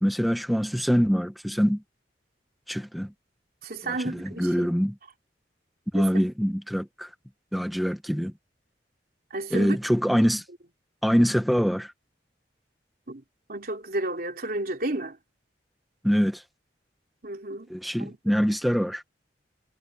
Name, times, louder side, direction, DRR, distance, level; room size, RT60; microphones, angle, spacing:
voice 1, 0.0-1.8 2.7-3.1 3.8-4.9 5.9-7.1 7.5-8.3 9.5-10.4 11.0-11.9 16.0-16.4 17.7-19.0, equal, ahead, 0.8 m, -24 dB
voice 2, 3.6-4.7 5.9-6.1 9.3-9.8 13.1-13.2 13.5-15.2 17.2-17.7 18.0-18.2, right 2 dB, 55° right, 3.3 m, -32 dB
head